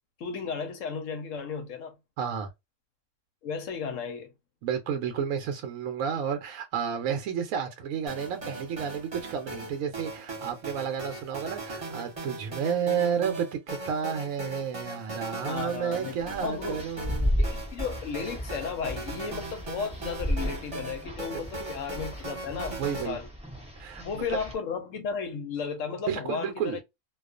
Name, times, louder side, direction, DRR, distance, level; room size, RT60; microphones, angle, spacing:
voice 1, 0.2-1.9 3.4-4.3 15.5-16.8 17.4-23.3 24.0-26.8, left 6 dB, 70° left, 0.9 m, -34 dB
voice 2, 2.2-2.5 4.6-17.5 21.3-21.7 22.8-23.2 23.8-24.4 26.1-26.8, right 7 dB, 70° right, 0.9 m, -31 dB
sound 1, 8.1-23.1, right 2 dB, 30° right, 0.9 m, -39 dB
sound 2, 16.2-24.5, equal, 10° right, 0.3 m, -34 dB
2.3 x 2.3 x 2.4 m
omnidirectional pair, 1.5 m